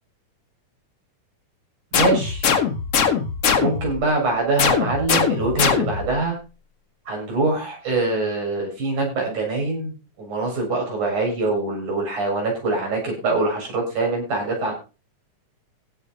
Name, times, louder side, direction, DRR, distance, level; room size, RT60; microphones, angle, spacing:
sound 1, 1.9-4.0 4.6-6.2, left 6 dB, 55° left, 2.5 m, -21 dB
voice 1, 1.9-2.5 3.6-6.4 7.1-14.7, right 3 dB, 75° right, 0 dB, 8.6 m, -24 dB
16.0 x 7.9 x 4.4 m, 0.32 s
omnidirectional pair, 3.5 m